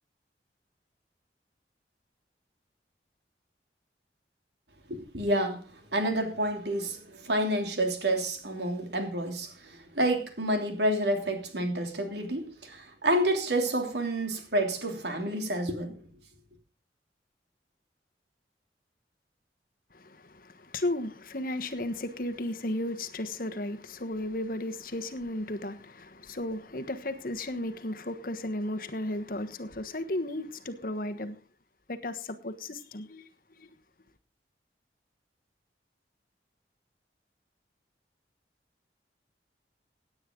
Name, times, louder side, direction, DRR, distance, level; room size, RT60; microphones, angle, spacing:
voice 1, 4.9-16.0, right 1 dB, 75° right, 3.0 m, -29 dB
voice 2, 19.9-31.4 31.9-33.3, left 1 dB, 50° left, 1.3 m, -34 dB
17.0 x 9.5 x 3.8 m
head